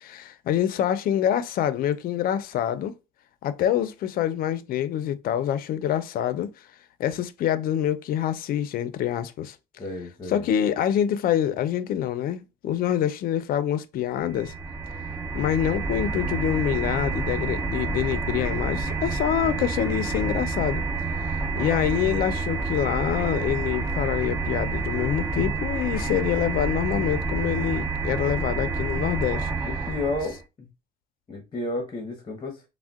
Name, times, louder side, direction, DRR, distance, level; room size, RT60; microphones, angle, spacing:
voice 1, 0.0-2.9 3.4-6.5 7.0-9.6 10.3-14.5 15.3-20.8 21.5-29.5, left 10 dB, 60° left, 0.4 m, -26 dB
voice 2, 9.8-10.5 29.6-30.7 31.3-32.6, left 2 dB, 30° left, 0.8 m, -32 dB
sound 1, 14.2-30.4, right 4 dB, 15° right, 0.4 m, -28 dB
3.5 x 2.1 x 2.3 m
cardioid pair, 110°, 17 cm